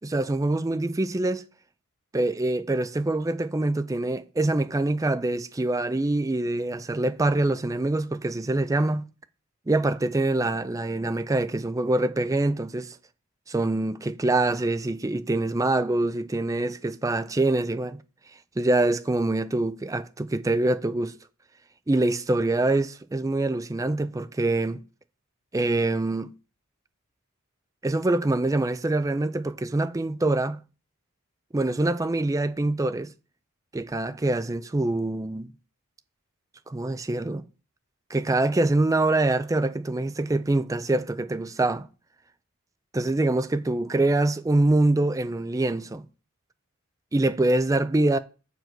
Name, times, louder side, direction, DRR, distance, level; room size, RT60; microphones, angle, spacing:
voice 1, 0.0-1.4 2.1-9.1 9.7-13.0 13.5-18.0 18.6-21.2 21.9-24.8 25.5-26.3 27.8-30.6 31.5-33.1 33.7-35.5 36.7-37.4 38.1-41.9 42.9-46.0 47.1-48.2, right 2 dB, 15° right, 0.4 m, -25 dB
6.6 x 4.7 x 6.0 m
head